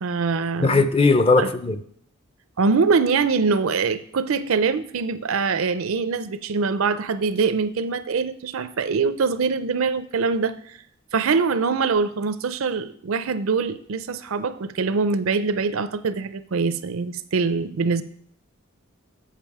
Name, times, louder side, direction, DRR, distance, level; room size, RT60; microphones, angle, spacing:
voice 1, 0.0-0.9 1.4-1.5 2.6-10.8 11.1-18.0, right 4 dB, 80° right, 13 dB, 0.5 m, -23 dB
voice 2, 0.6-1.8, left 3 dB, 25° left, 11 dB, 0.5 m, -18 dB
7.4 x 7.2 x 4.8 m, 0.62 s
head